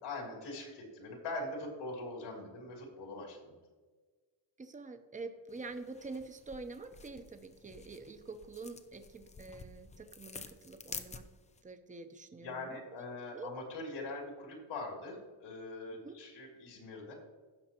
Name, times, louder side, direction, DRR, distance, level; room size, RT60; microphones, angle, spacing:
voice 1, 0.0-3.5 12.4-17.1, left 2 dB, 80° left, 0 dB, 3.1 m, -42 dB
voice 2, 4.6-11.2 11.6-12.9 13.3-13.5 15.9-16.2, right 3 dB, 15° right, 8 dB, 0.7 m, -46 dB
sound 1, 5.5-11.6, left 4 dB, 15° left, 0.4 m, -50 dB
16.0 x 5.9 x 2.9 m, 1.4 s
cardioid pair, 135°, 47 cm